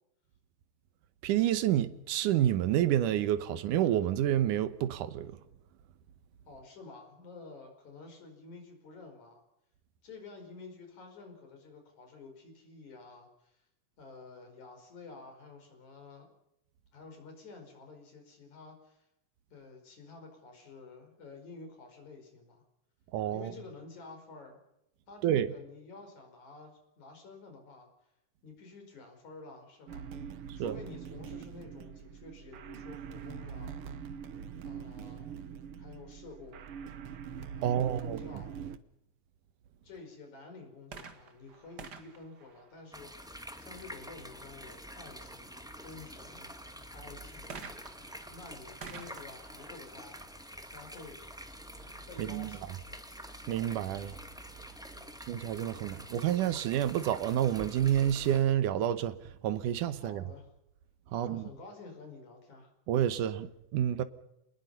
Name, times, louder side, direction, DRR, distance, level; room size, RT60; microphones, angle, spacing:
voice 1, 1.2-5.4 23.1-23.5 25.2-25.5 30.5-30.8 37.6-38.2 52.2-52.5 53.5-54.2 55.3-60.2 61.1-61.5 62.9-64.0, right 11 dB, 85° right, 2.6 m, -29 dB
voice 2, 6.5-9.4 10.0-13.6 14.0-16.3 16.9-19.1 19.5-22.6 23.3-24.6 25.1-27.9 28.4-30.1 30.5-34.1 34.6-35.3 35.8-36.6 37.5-38.6 39.8-48.0 48.3-50.2 50.6-51.2 52.1-52.7 54.9-55.2 59.9-60.5 61.1-62.7, left 3 dB, 65° left, 6.4 m, -50 dB
sound 1, 29.9-38.8, right 7 dB, 60° right, 1.6 m, -43 dB
sound 2, 40.8-43.4 47.5-51.1 51.9-52.0, right 5 dB, 40° right, 1.8 m, -50 dB
sound 3, 42.9-58.4, equal, ahead, 1.3 m, -47 dB
27.0 x 20.5 x 5.5 m
omnidirectional pair, 3.6 m